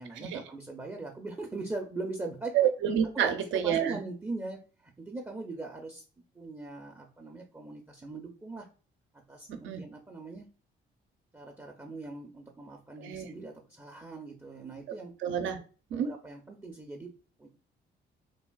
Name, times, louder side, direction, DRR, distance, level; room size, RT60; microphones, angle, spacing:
voice 1, 0.0-2.7 3.1-3.3 3.6-6.0 6.3-8.7 9.3-10.4 11.3-15.1 15.9-17.1 17.4-17.5, right 2 dB, 10° right, 1 dB, 0.5 m, -41 dB
voice 2, 2.5-4.0 9.6-9.8 13.0-13.3 15.2-15.6 15.9-16.1, right 9 dB, 75° right, 6 dB, 0.5 m, -28 dB
3.3 x 2.4 x 2.2 m, 0.37 s
cardioid pair, 90°, 20 cm